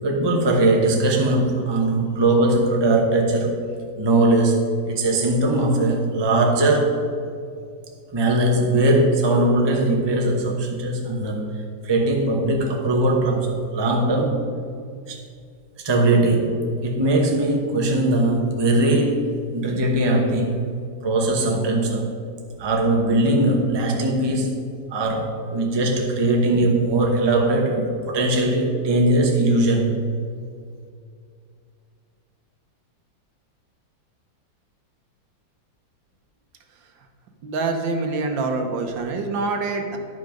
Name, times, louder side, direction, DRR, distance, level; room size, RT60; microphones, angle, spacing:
voice 1, 0.0-3.6 4.0-7.0 8.1-11.5 11.8-14.5 15.1-15.2 15.8-20.7 21.0-22.1 22.6-24.6 24.9-30.0, right 2 dB, 20° right, 1 dB, 0.7 m, -20 dB
voice 2, 37.4-40.0, right 3 dB, 85° right, 4 dB, 1.7 m, -25 dB
11.0 x 5.6 x 5.1 m, 2.3 s
omnidirectional pair, 2.0 m